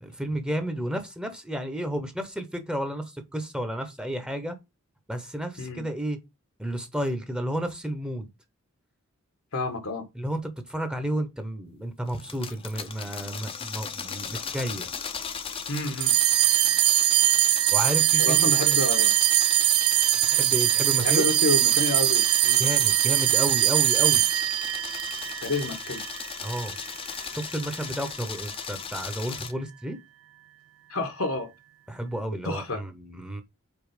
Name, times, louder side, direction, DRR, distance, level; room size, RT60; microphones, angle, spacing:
voice 1, 0.0-4.6 5.1-6.2 6.6-8.3 10.1-14.9 16.7-16.8 17.7-18.8 20.3-21.3 22.6-24.3 26.4-26.7 27.3-30.0 31.9-33.4, equal, 5° right, 0.9 m, -32 dB
voice 2, 9.5-10.1 15.7-16.1 18.2-19.2 21.0-22.7 25.4-26.0 30.9-31.5 32.4-32.8, left 2 dB, 80° left, 1.4 m, -29 dB
sound 1, 12.1-29.5, left 6 dB, 25° left, 0.6 m, -37 dB
sound 2, 16.0-26.7, right 15 dB, 85° right, 0.5 m, -22 dB
5.2 x 4.2 x 5.0 m
head